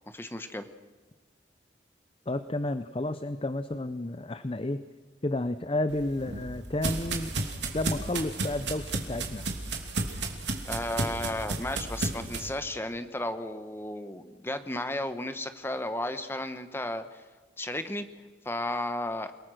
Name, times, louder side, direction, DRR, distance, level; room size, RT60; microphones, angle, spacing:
voice 1, 0.1-0.7 10.6-17.2 17.6-18.1 18.4-19.3, left 1 dB, 10° left, 9 dB, 1.2 m, -34 dB
voice 2, 2.3-4.8 5.2-7.3 7.7-9.5, left 1 dB, 30° left, 12 dB, 0.6 m, -31 dB
sound 1, 5.9-12.5, right 3 dB, 75° right, 3.0 m, -33 dB
29.0 x 19.0 x 6.5 m, 1.3 s
head